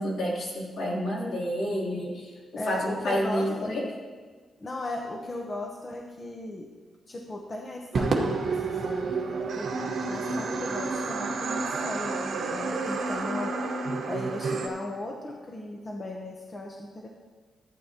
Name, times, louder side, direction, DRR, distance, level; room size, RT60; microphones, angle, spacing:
voice 1, 0.0-2.3 2.7-3.8, equal, 65° left, -4 dB, 2.9 m, -29 dB
voice 2, 2.6-3.8 4.6-6.7 7.1-9.7 10.1-13.6 14.1-17.1, left 2 dB, 25° left, 1 dB, 0.8 m, -37 dB
sound 1, 7.9-14.7, right 4 dB, 65° right, 1.3 m, -30 dB
Crowd / Fireworks, 8.0-12.4, right 3 dB, 45° right, 1.1 m, -34 dB
14.5 x 9.4 x 2.9 m, 1.5 s
wide cardioid pair, 150°, 0 cm